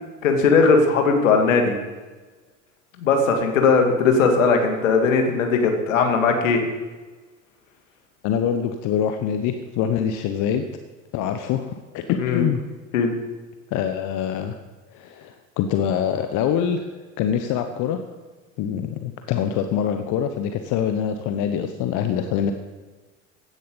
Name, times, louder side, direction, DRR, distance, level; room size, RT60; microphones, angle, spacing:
voice 1, 0.2-1.7 3.0-6.6 12.2-12.5 12.9-13.1, left 4 dB, 70° left, 4 dB, 2.3 m, -18 dB
voice 2, 8.2-10.6 11.1-12.6 13.7-14.5 14.9-16.8 17.2-18.0 18.6-22.5, left 8 dB, 50° left, 8 dB, 1.1 m, -24 dB
16.0 x 11.0 x 5.5 m, 1.3 s
figure-of-eight pair, 65°, 40 cm